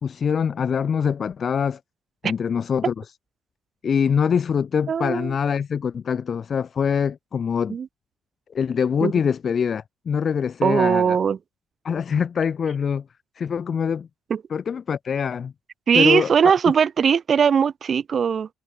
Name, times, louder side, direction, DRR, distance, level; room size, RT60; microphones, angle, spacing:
voice 1, 0.0-1.8 2.2-2.9 3.8-7.8 8.5-11.2 11.8-13.0 13.4-14.1 14.5-15.5 15.9-16.5, left 7 dB, 40° left, 1.4 m, -24 dB
voice 2, 4.9-5.3 7.7-7.9 9.0-9.1 10.6-11.4 14.3-14.4 15.9-18.5, right 7 dB, 40° right, 0.6 m, -19 dB
cardioid pair, 130°, 0 cm